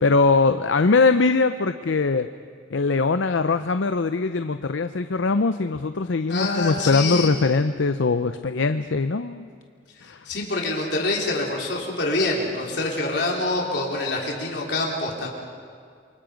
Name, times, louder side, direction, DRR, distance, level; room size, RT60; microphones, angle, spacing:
voice 1, 0.0-2.3 2.7-9.5 10.0-10.3, left 3 dB, 80° left, 10 dB, 0.6 m, -21 dB
voice 2, 6.3-7.3 10.3-15.3, left 2 dB, 60° left, -1 dB, 4.0 m, -26 dB
28.5 x 23.5 x 5.2 m, 2.2 s
head